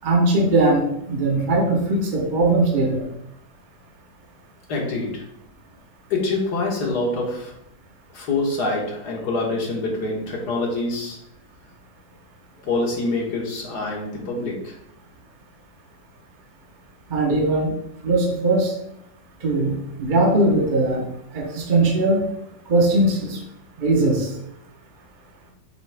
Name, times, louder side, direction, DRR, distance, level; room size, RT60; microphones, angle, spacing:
voice 1, 0.0-3.1 17.1-17.7 18.0-18.7 19.4-21.0 21.3-22.3 22.7-23.4 23.8-24.3, right 2 dB, 35° right, -1 dB, 1.0 m, -20 dB
voice 2, 4.7-5.2 6.1-7.5 8.1-11.2 12.6-14.8, left 2 dB, 65° left, -1 dB, 1.9 m, -25 dB
7.6 x 3.7 x 3.4 m, 0.75 s
omnidirectional pair, 1.9 m